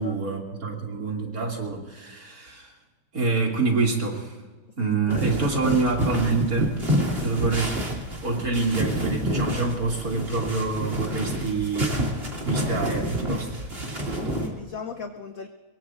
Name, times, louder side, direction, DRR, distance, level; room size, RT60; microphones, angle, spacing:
voice 1, 0.0-2.7 3.1-4.3 4.8-6.8 7.2-7.8 8.2-12.0 12.4-13.5, right 3 dB, 45° right, -1 dB, 3.0 m, -26 dB
voice 2, 4.8-5.8 10.7-11.0 14.1-15.5, left 4 dB, 55° left, 5 dB, 1.0 m, -38 dB
sound 1, 5.1-14.5, equal, 25° right, 2.7 m, -28 dB
23.0 x 23.0 x 2.6 m, 1.3 s
omnidirectional pair, 2.3 m